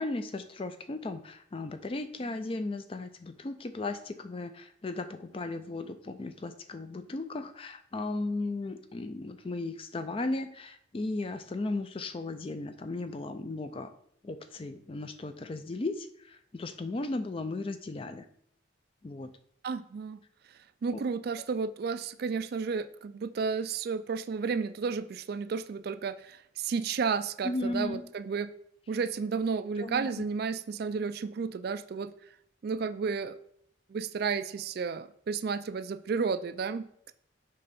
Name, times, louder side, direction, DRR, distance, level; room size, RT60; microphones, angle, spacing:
voice 1, 0.0-13.9 14.2-18.3 19.0-19.3 20.9-21.0 27.4-28.0 29.8-30.1, left 2 dB, 25° left, 10 dB, 0.4 m, -36 dB
voice 2, 19.6-20.2 20.8-28.5 28.9-32.1 32.6-33.4 33.9-36.9, right 5 dB, 50° right, 13 dB, 0.3 m, -32 dB
6.7 x 3.2 x 5.4 m, 0.68 s
head